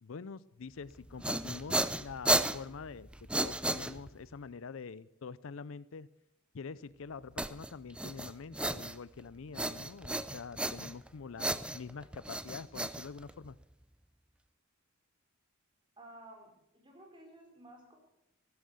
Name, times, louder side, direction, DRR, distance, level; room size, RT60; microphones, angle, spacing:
voice 1, 0.0-6.1 6.5-13.6, left 5 dB, 70° left, 18 dB, 0.5 m, -46 dB
sound 1, 0.9-4.3 7.4-9.2 9.5-11.1 11.4-13.6, right 1 dB, 5° right, 0.5 m, -34 dB
voice 2, 16.0-18.0, right 1 dB, 25° right, 1 dB, 4.6 m, -54 dB
15.0 x 12.5 x 6.9 m, 0.83 s
head